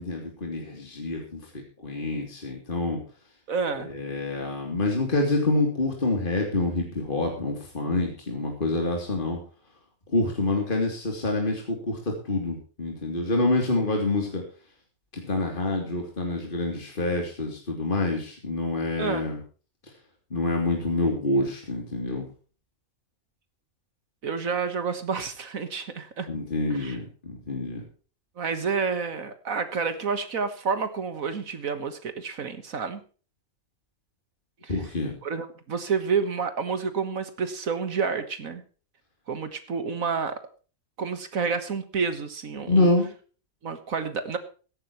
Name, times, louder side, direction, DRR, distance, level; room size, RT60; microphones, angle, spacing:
voice 1, 0.0-3.0 3.7-9.4 10.1-14.4 15.1-19.4 20.3-22.3 26.3-27.8 34.7-35.2 42.7-43.1, left 2 dB, 35° left, 1 dB, 3.2 m, -27 dB
voice 2, 3.5-3.9 19.0-19.2 24.2-26.3 26.7-27.0 28.4-33.0 34.6-34.7 35.2-38.6 39.3-40.4 41.0-42.9 43.6-44.4, right 5 dB, 70° right, 10 dB, 1.8 m, -29 dB
17.5 x 14.5 x 3.1 m, 0.38 s
omnidirectional pair, 1.5 m